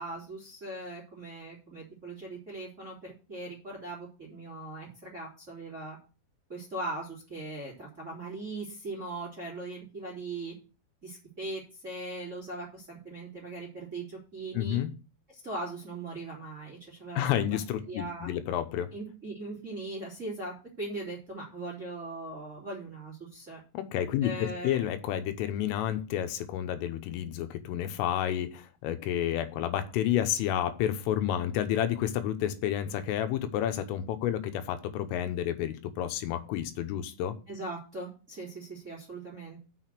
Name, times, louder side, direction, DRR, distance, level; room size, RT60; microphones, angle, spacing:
voice 1, 0.0-6.0 6.5-10.5 11.0-14.8 15.4-17.6 17.9-18.3 18.9-23.6 24.2-24.8 37.5-39.6, right 2 dB, 20° right, -4 dB, 2.2 m, -40 dB
voice 2, 14.5-14.9 17.2-18.9 23.8-37.4, left 11 dB, 85° left, 9 dB, 3.6 m, -30 dB
6.6 x 6.3 x 7.6 m, 0.34 s
omnidirectional pair, 5.7 m